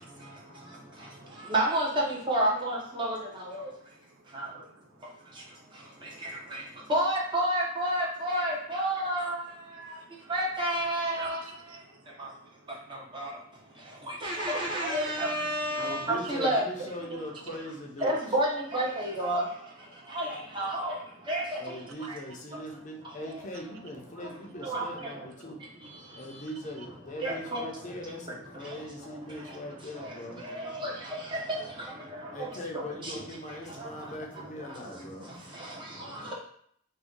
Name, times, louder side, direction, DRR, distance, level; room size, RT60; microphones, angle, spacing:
voice 1, 0.3-1.5 3.6-6.9 9.6-10.3 11.0-14.3 16.2-16.3 19.9-20.2 20.8-21.3 22.0-22.1 26.8-26.9 32.1-32.2 35.9-36.3, right 5 dB, 80° right, 4 dB, 0.4 m, -56 dB
voice 2, 1.5-3.7 4.3-4.5 6.2-6.6 6.9-9.4 10.3-11.4 12.9-13.3 14.1-16.6 18.0-19.5 20.1-20.9 21.3-21.6 24.6-25.1 27.2-27.7 30.0-30.1 30.4-31.2 33.0-33.1 33.8-33.9, right 1 dB, 25° right, -3 dB, 0.6 m, -29 dB
voice 3, 15.8-18.4 21.6-25.6 26.1-30.4 32.3-35.3, left 1 dB, 35° left, -1 dB, 0.5 m, -40 dB
2.6 x 2.1 x 3.6 m, 0.64 s
head